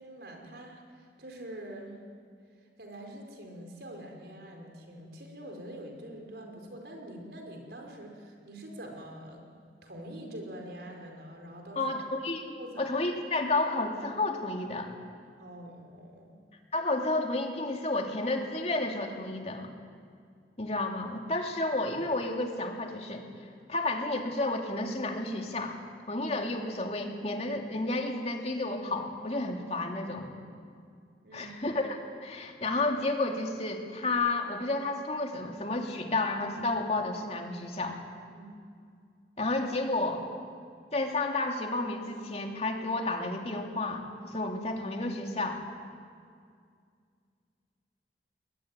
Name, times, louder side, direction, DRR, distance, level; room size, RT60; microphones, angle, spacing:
voice 1, 0.0-2.0 2.8-9.4 9.8-11.8 12.6-12.7 15.4-16.4 30.5-30.6 31.2-31.5 38.3-38.5, right 1 dB, 70° right, 2 dB, 4.8 m, -45 dB
voice 2, 11.8-15.0 16.7-19.7 20.6-23.2 23.7-25.8 26.1-30.3 31.3-38.0 39.4-40.2 40.9-45.6, left 2 dB, 35° left, 2 dB, 2.8 m, -31 dB
21.5 x 21.5 x 9.8 m, 2.2 s
head